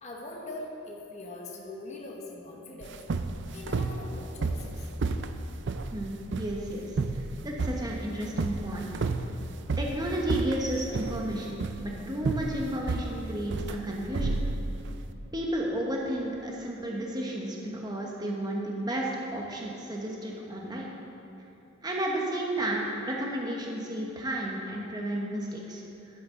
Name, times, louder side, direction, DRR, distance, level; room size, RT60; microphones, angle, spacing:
voice 1, 0.0-3.0 3.5-4.9, left 2 dB, 35° left, -1 dB, 1.1 m, -42 dB
sound 1, 2.8-15.0, right 3 dB, 60° right, 0.5 m, -32 dB
voice 2, 5.9-9.0 9.8-14.4 15.3-20.9 21.8-26.2, right 1 dB, 20° right, -2 dB, 1.0 m, -32 dB
11.5 x 10.5 x 3.8 m, 3.0 s
head